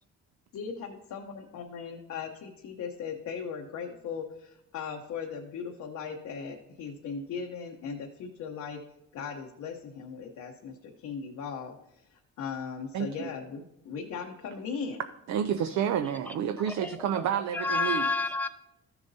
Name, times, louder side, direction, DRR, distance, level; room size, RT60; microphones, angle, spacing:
voice 1, 0.5-8.8 9.1-15.0, left 6 dB, 70° left, 0.9 m, -38 dB
voice 2, 12.9-13.3 15.3-18.0, right 8 dB, 70° right, 0.5 m, -29 dB
voice 3, 16.6-18.5, left 3 dB, 5° left, 0.8 m, -31 dB
13.0 x 6.9 x 2.7 m
cardioid pair, 90°, 30 cm